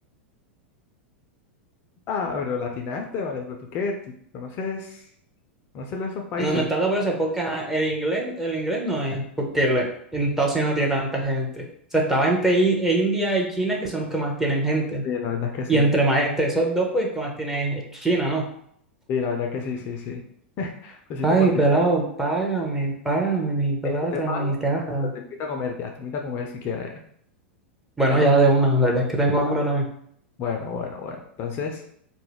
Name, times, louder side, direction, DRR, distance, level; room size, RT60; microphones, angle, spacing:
voice 1, 2.1-4.0 4.3-5.1 5.7-6.6 15.0-15.8 19.1-20.2 20.6-21.5 23.8-24.6 25.1-26.9 28.1-28.3 29.5-29.6 30.4-31.8, left 5 dB, 40° left, 2 dB, 0.4 m, -30 dB
voice 2, 6.4-11.7 11.9-15.0 15.7-18.5 21.2-25.1 28.0-29.8, right 2 dB, 5° right, -1 dB, 0.6 m, -22 dB
2.2 x 2.0 x 3.3 m, 0.67 s
figure-of-eight pair, 95°, 6 cm